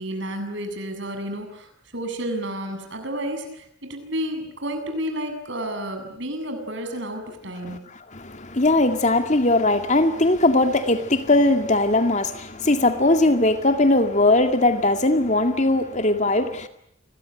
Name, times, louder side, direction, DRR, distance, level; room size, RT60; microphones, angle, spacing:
voice 1, 0.0-7.8, equal, 60° right, 7.5 m, -31 dB
voice 2, 7.6-16.7, left 2 dB, 35° left, 2.2 m, -20 dB
29.0 x 22.0 x 9.1 m
head